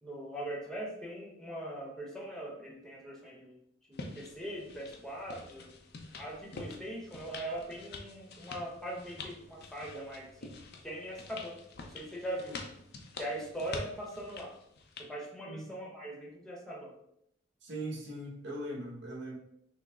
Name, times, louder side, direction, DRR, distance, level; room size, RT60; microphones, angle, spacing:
voice 1, 0.0-3.6 3.9-5.7 6.2-10.5 10.8-12.6 13.2-14.5 15.0-16.9, right 1 dB, ahead, -2 dB, 0.9 m, -41 dB
sound 1, 3.9-15.1, left 3 dB, 55° left, 0.6 m, -47 dB
voice 2, 17.6-19.4, right 1 dB, 60° right, -2 dB, 1.2 m, -40 dB
6.0 x 2.1 x 3.5 m, 0.73 s
head